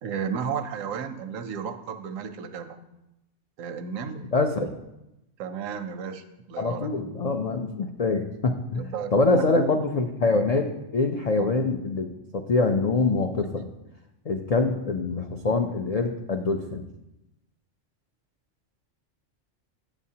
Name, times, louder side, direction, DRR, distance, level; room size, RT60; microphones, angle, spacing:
voice 1, 0.0-2.8 3.6-4.3 4.6-4.7 5.4-7.0 8.7-9.7 11.4-11.5, right 7 dB, 90° right, 9 dB, 1.0 m, -33 dB
voice 2, 4.3-4.7 6.6-12.1 12.3-13.7 14.3-16.9, left 3 dB, 90° left, 3 dB, 0.3 m, -25 dB
8.9 x 7.1 x 2.8 m, 0.91 s
omnidirectional pair, 1.3 m